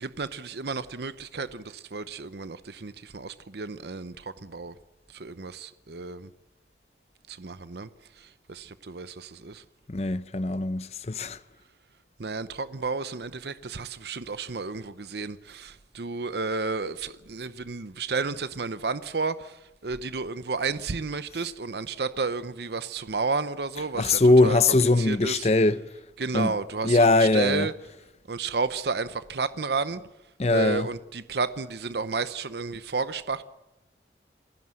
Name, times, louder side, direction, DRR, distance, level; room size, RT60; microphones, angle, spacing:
voice 1, 0.0-4.7 5.1-6.3 7.3-7.9 8.2-9.6 12.2-24.6 25.0-25.5 26.2-27.7 28.3-30.0 30.5-33.4, right 4 dB, 70° right, 0.8 m, -32 dB
voice 2, 9.9-11.4 24.0-25.8 26.3-26.5 26.8-27.7 30.4-30.9, left 2 dB, 35° left, 0.7 m, -21 dB
28.0 x 15.5 x 7.7 m
head